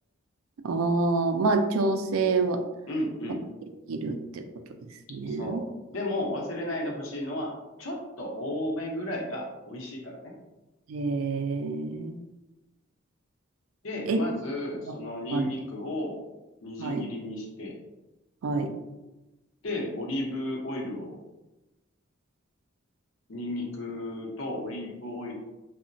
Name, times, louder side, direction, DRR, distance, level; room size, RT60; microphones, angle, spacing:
voice 1, 0.6-2.6 3.9-4.4 5.1-5.6 10.9-12.2 14.1-14.2 14.8-14.9 15.3-15.5 16.8-17.1 18.4-18.7, right 3 dB, 90° right, 6 dB, 0.4 m, -27 dB
voice 2, 2.9-3.4 5.3-5.6 5.9-7.5 7.8-10.3 13.8-16.2 16.6-17.7 19.6-21.2 23.3-25.3, left 1 dB, 75° left, -1 dB, 0.7 m, -33 dB
2.9 x 2.1 x 2.5 m, 1.0 s
head